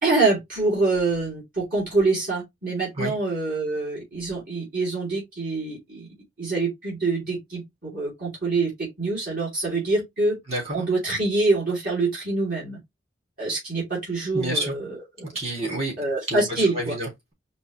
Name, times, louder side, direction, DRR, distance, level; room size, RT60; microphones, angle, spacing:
voice 1, 0.0-6.1 6.4-8.7 9.0-10.4 10.7-12.8 13.4-15.0 16.0-16.9, right 3 dB, 50° right, 2.8 m, -25 dB
voice 2, 10.5-10.8 14.3-14.7 15.2-16.0 16.3-17.3, right 1 dB, 35° right, 3.2 m, -29 dB
5.3 x 3.0 x 3.1 m
head